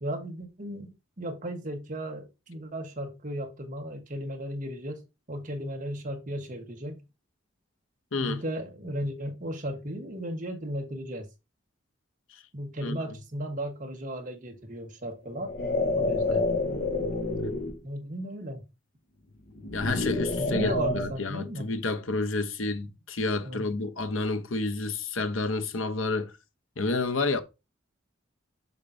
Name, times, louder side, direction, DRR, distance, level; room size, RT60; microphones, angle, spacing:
voice 1, 0.0-7.0 8.2-11.3 12.5-15.6 15.9-16.5 17.8-18.7 20.4-21.7 23.4-23.7, equal, 40° right, 1.2 m, -35 dB
voice 2, 8.1-8.4 12.8-13.0 16.3-16.4 19.7-26.3 26.8-27.4, left 3 dB, 85° left, 0.9 m, -30 dB
sound 1, 15.3-17.8 19.6-21.1, left 2 dB, 45° left, 1.0 m, -28 dB
6.7 x 6.6 x 2.7 m
head